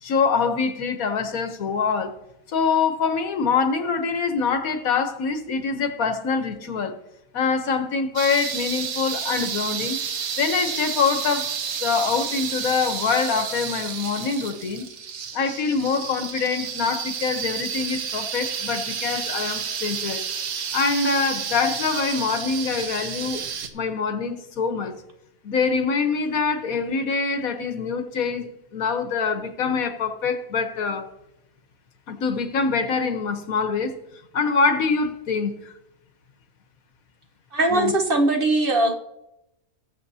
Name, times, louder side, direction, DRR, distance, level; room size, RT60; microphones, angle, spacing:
voice 1, 0.0-2.1 2.5-6.9 7.3-10.0 10.4-11.5 11.8-14.9 15.3-20.2 20.7-23.4 23.7-24.9 25.4-31.1 32.1-34.0 34.3-35.7 37.7-37.9, left 5 dB, 75° left, 1.5 m, -24 dB
sound 1, 8.2-23.7, right 7 dB, 85° right, 1.4 m, -30 dB
voice 2, 37.5-38.9, right 2 dB, 45° right, 1.1 m, -20 dB
20.0 x 7.3 x 2.8 m
omnidirectional pair, 1.5 m